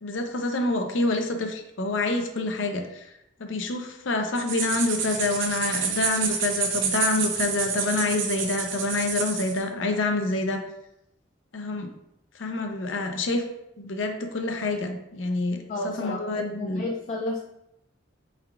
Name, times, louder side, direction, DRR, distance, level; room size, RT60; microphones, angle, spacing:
voice 1, 0.0-3.1 3.4-10.6 11.5-11.9 12.4-13.4 13.8-15.6 15.8-16.8, left 2 dB, 90° left, 5 dB, 0.6 m, -27 dB
sound 1, 4.4-9.6, right 6 dB, 75° right, 0.6 m, -28 dB
voice 2, 15.7-17.4, left 2 dB, 40° left, -1 dB, 0.4 m, -32 dB
4.5 x 3.4 x 2.4 m, 0.82 s
head